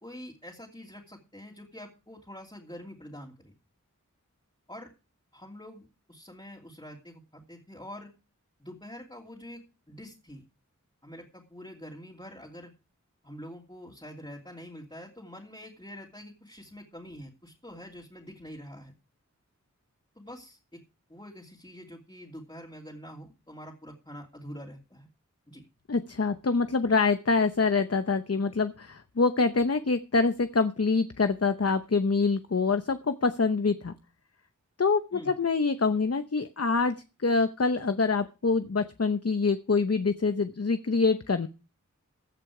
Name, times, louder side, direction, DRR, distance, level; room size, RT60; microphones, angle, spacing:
voice 1, 0.0-3.5 4.7-4.9 5.3-8.1 8.6-10.4 11.0-12.7 13.2-18.9 20.1-20.8 21.1-25.1 25.5-25.6 35.1-35.3, equal, 15° left, -2 dB, 2.9 m, -45 dB
voice 2, 25.9-33.9 34.8-41.5, left 4 dB, 50° left, 10 dB, 0.8 m, -25 dB
16.0 x 8.7 x 4.9 m, 0.32 s
wide cardioid pair, 40°, 31 cm